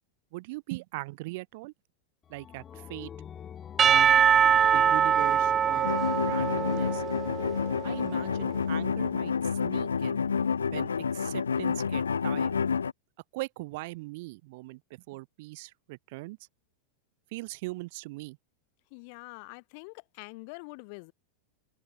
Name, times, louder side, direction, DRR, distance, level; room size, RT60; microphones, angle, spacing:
voice 1, 0.3-1.7 2.3-3.1 3.8-4.1 4.7-7.0 7.8-9.3 9.6-10.3 10.7-12.6 13.3-16.4 17.3-18.4, right 23 dB, 50° right, 2.6 m, -40 dB
sound 1, 2.2-9.8, left 8 dB, 25° left, 4.9 m, -46 dB
Percussion / Church bell, 3.8-8.0, right 8 dB, 25° right, 1.9 m, -23 dB
sound 2, 5.8-12.9, left 6 dB, 70° left, 0.4 m, -29 dB
voice 2, 18.9-21.1, left 33 dB, 45° left, 5.7 m, -45 dB
figure-of-eight pair, 90°, 0 cm